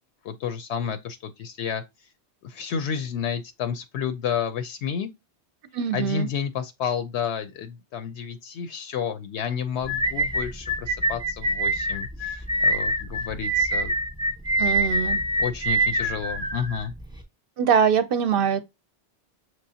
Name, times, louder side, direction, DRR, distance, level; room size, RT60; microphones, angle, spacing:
voice 1, 0.2-1.8 2.4-5.1 5.9-13.9 15.4-16.9, left 7 dB, 75° left, 0.9 m, -31 dB
voice 2, 5.7-6.3 14.6-15.2 17.6-18.6, right 7 dB, 60° right, 0.7 m, -22 dB
sound 1, 9.9-17.2, right 1 dB, 5° right, 0.9 m, -25 dB
6.0 x 3.2 x 2.7 m
omnidirectional pair, 1.2 m